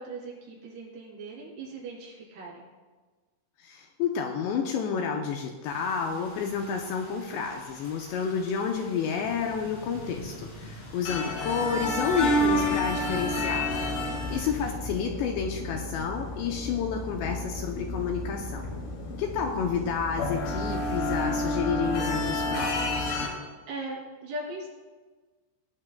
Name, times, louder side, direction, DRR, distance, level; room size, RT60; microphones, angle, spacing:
voice 1, 0.0-2.6 13.8-14.4 23.7-24.7, right 2 dB, 60° right, -4 dB, 4.8 m, -39 dB
voice 2, 3.6-13.7 14.3-18.7 19.2-23.2, left 6 dB, 80° left, 2 dB, 2.7 m, -30 dB
sound 1, 5.6-14.7, left 1 dB, 40° left, 2.7 m, -46 dB
sound 2, 11.0-23.3, left 1 dB, 55° left, 3.3 m, -30 dB
20.0 x 9.7 x 2.2 m, 1.3 s
omnidirectional pair, 5.5 m